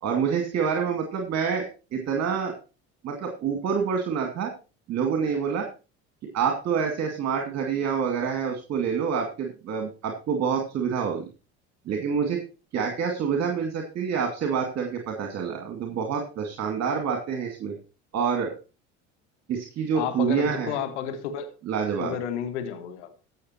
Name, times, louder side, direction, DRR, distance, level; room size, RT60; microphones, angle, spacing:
voice 1, 0.0-2.5 3.0-4.5 4.9-5.7 6.3-11.2 11.9-12.4 12.7-17.7 18.1-18.5 19.5-20.8 21.7-22.2, right 6 dB, 50° right, 3 dB, 2.4 m, -27 dB
voice 2, 19.9-21.5 22.0-23.1, left 8 dB, 85° left, 11 dB, 1.7 m, -31 dB
15.0 x 6.6 x 4.4 m, 0.32 s
hypercardioid pair, 80°, 34 cm